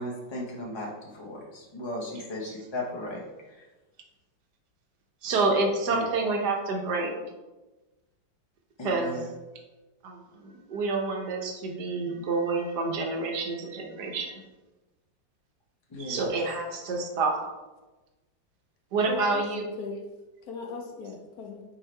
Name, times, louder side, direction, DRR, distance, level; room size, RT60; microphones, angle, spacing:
voice 1, 0.0-3.7 5.9-6.1 8.8-9.3 15.9-16.3, left 1 dB, 30° left, -4 dB, 0.5 m, -36 dB
voice 2, 5.2-7.1 8.8-9.2 10.0-14.4 16.0-17.4 18.9-19.6, right 3 dB, 65° right, 2 dB, 1.5 m, -28 dB
voice 3, 19.1-20.0 20.4-21.6, left 3 dB, 60° left, 3 dB, 1.2 m, -38 dB
4.8 x 4.5 x 4.4 m, 1.1 s
omnidirectional pair, 2.0 m